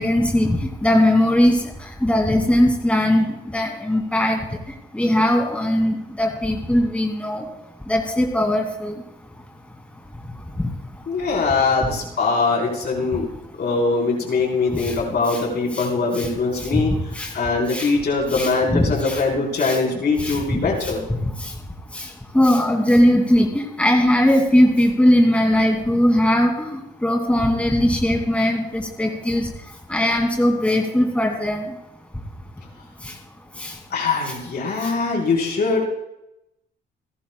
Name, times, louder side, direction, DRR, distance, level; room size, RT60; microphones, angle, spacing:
voice 1, 0.0-1.6 2.0-3.3 3.5-4.4 4.9-7.4 7.9-8.9 14.7-14.9 15.3-15.4 15.7-15.9 16.2-16.3 16.6-16.8 17.2-17.3 17.7-17.9 18.3-19.2 19.6-19.8 20.2-20.9 21.4-21.5 21.9-22.1 22.3-29.5 29.9-31.7 33.6-33.7, left 1 dB, 5° left, 1 dB, 2.4 m, -19 dB
voice 2, 11.1-13.3 13.6-21.0 33.9-35.8, left 4 dB, 55° left, -1 dB, 4.1 m, -22 dB
28.5 x 11.5 x 2.3 m, 0.86 s
cardioid pair, 90°, 20 cm